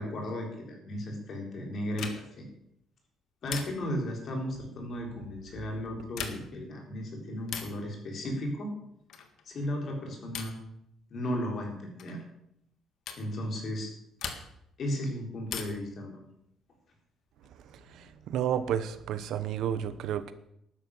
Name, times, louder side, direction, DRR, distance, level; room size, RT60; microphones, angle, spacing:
voice 1, 0.0-2.4 3.4-8.7 9.5-10.6 11.1-12.2 13.2-13.9 14.8-16.2, equal, 45° left, 2 dB, 4.0 m, -35 dB
sound 1, 1.9-2.5 3.5-4.1 6.0-6.7 7.5-7.9 9.1-9.4 10.3-10.7 12.0-12.2 13.1-13.3 14.2-14.7 15.5-16.0 17.4-18.1, left 7 dB, 60° left, 1.8 m, -40 dB
voice 2, 17.9-20.3, right 9 dB, 70° right, 12 dB, 1.0 m, -31 dB
12.5 x 10.5 x 7.2 m, 0.75 s
cardioid pair, 160°, 0 cm